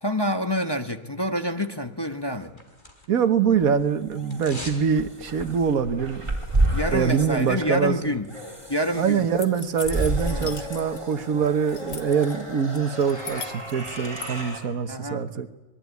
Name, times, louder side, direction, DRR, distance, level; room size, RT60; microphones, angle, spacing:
voice 1, 0.0-2.6 6.7-8.3 8.7-9.3 10.3-10.6 14.9-15.3, equal, 20° left, 5 dB, 1.1 m, -27 dB
sound 1, 2.1-3.3 3.6-4.9 5.2-5.3, left 1 dB, 35° left, 3.9 m, -41 dB
voice 2, 3.1-6.2 6.9-8.1 9.0-15.5, right 7 dB, 80° right, 9 dB, 1.7 m, -24 dB
sound 2, 3.5-14.6, right 1 dB, 20° right, 4.3 m, -31 dB
sound 3, 9.4-11.1 11.4-12.3 12.7-14.3, left 6 dB, 55° left, 1.8 m, -38 dB
25.5 x 21.5 x 9.5 m, 1.1 s
omnidirectional pair, 1.5 m